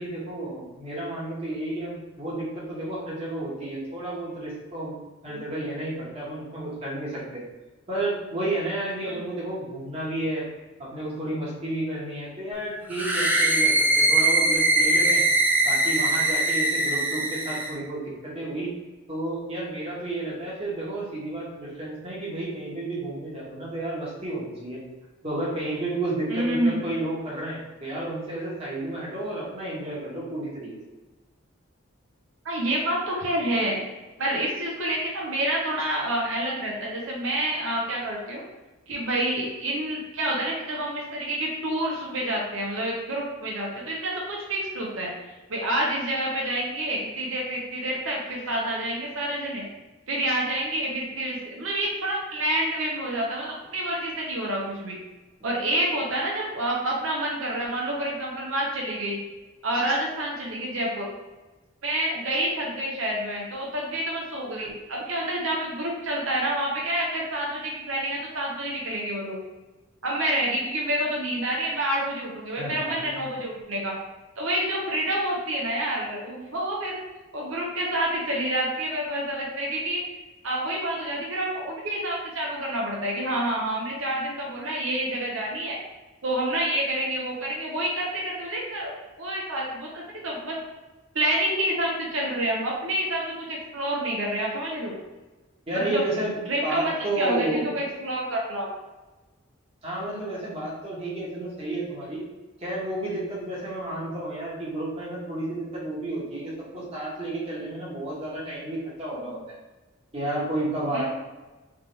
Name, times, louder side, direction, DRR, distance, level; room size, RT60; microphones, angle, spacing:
voice 1, 0.0-5.0 5.2-7.4 7.9-10.5 10.8-15.2 15.6-18.7 19.1-24.8 25.2-30.8 72.6-73.3 95.7-96.4 96.6-97.7 99.8-102.2 102.6-109.4 110.1-111.1, right 1 dB, 30° right, -6 dB, 1.4 m, -31 dB
sound 1, 12.9-17.7, right 2 dB, 10° right, 0.4 m, -22 dB
voice 2, 26.3-26.8 32.4-33.8 34.2-38.4 38.9-45.1 45.5-49.7 50.1-55.0 55.4-59.2 59.6-61.1 61.8-69.4 70.0-74.0 74.4-77.0 77.3-80.0 80.4-85.8 86.2-90.6 91.1-94.9 95.7-96.0 96.5-98.7 110.9-111.1, right 1 dB, 75° right, -3 dB, 0.9 m, -28 dB
3.7 x 3.5 x 3.3 m, 1.2 s
head